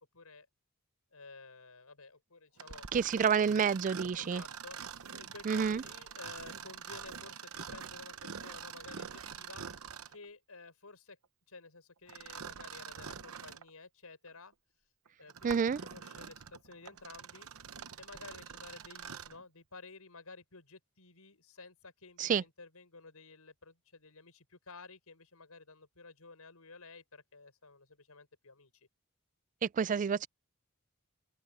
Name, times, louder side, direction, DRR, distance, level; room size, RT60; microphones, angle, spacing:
voice 1, 0.1-0.5 1.1-2.9 4.2-9.6 10.1-11.2 11.5-14.5 15.2-15.6 15.8-17.5 18.0-28.9, left 3 dB, 90° left, 5.6 m, -53 dB
Mechanisms, 2.6-10.3 12.1-13.7 14.3-14.4 15.1-19.4, right 7 dB, 70° right, 0.9 m, -45 dB
voice 2, 2.9-4.4 5.4-5.8 15.4-15.8 22.2-22.4 29.6-30.3, right 6 dB, 35° right, 0.3 m, -29 dB
open air
head